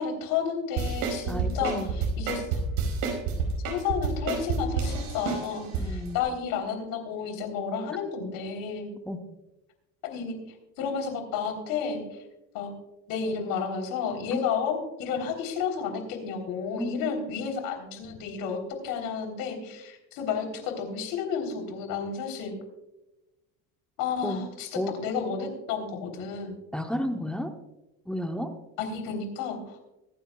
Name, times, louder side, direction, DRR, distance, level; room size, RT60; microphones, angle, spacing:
voice 1, 0.0-2.6 3.7-8.9 10.0-10.4 10.8-12.2 12.5-12.7 13.1-18.6 18.8-22.5 24.0-26.6 28.8-29.8, left 6 dB, 70° left, 4 dB, 3.5 m, -31 dB
sound 1, 0.8-5.8 6.2-6.3, right 6 dB, 80° right, 4.7 m, -28 dB
voice 2, 1.3-1.9 5.8-6.2 9.1-9.2 14.3-14.4 16.8-17.1 24.2-24.4 24.8-24.9 26.7-27.5 28.1-28.5, left 1 dB, 5° left, 5 dB, 0.7 m, -32 dB
23.5 x 10.0 x 2.3 m, 0.99 s
cardioid pair, 155°, 36 cm